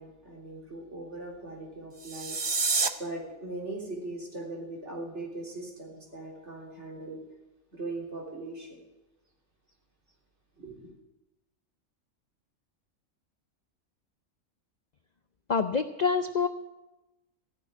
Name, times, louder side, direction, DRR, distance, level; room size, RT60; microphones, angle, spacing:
voice 1, 0.0-2.4 2.6-7.2 7.7-8.8 10.6-10.9, right 2 dB, 55° right, -3 dB, 3.9 m, -40 dB
sound 1, 1.9-2.9, right 4 dB, 35° right, 0.4 m, -28 dB
voice 2, 15.5-16.5, left 5 dB, 55° left, 9 dB, 0.4 m, -26 dB
15.5 x 6.6 x 9.7 m, 1.0 s
omnidirectional pair, 1.4 m